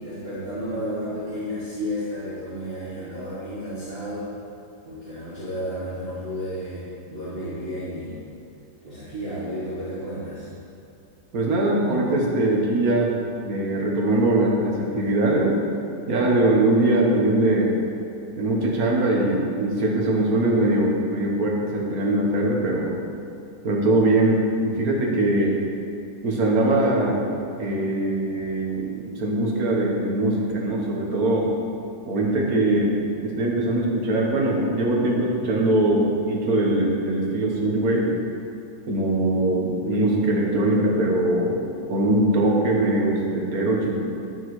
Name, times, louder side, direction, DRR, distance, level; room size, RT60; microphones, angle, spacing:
voice 1, 0.0-4.3 4.8-6.8 7.1-8.2 8.8-10.5, equal, 40° right, -12 dB, 1.7 m, -32 dB
voice 2, 11.3-13.1 13.4-15.6 16.1-17.7 18.4-22.9 23.6-25.6 26.2-27.2 27.5-31.5 32.1-38.1 38.9-41.5 41.9-44.0, right 1 dB, 65° right, -2 dB, 1.6 m, -22 dB
9.3 x 6.3 x 3.1 m, 2.6 s
omnidirectional pair, 1.7 m